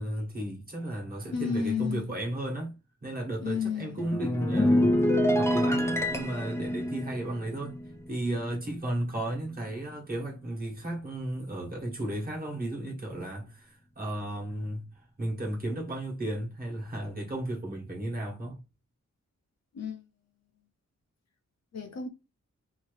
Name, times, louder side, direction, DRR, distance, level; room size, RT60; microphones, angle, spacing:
voice 1, 0.0-2.8 3.0-5.0 5.4-7.8 8.1-14.9 15.2-18.6, right 1 dB, 30° right, 1.3 m, -34 dB
voice 2, 1.3-2.1 3.4-4.1 19.7-20.0 21.7-22.1, left 6 dB, 60° left, 0.7 m, -31 dB
sound 1, 4.0-8.6 8.9-9.2, left 1 dB, 10° left, 0.4 m, -27 dB
2.8 x 2.6 x 3.2 m
wide cardioid pair, 145°, 30 cm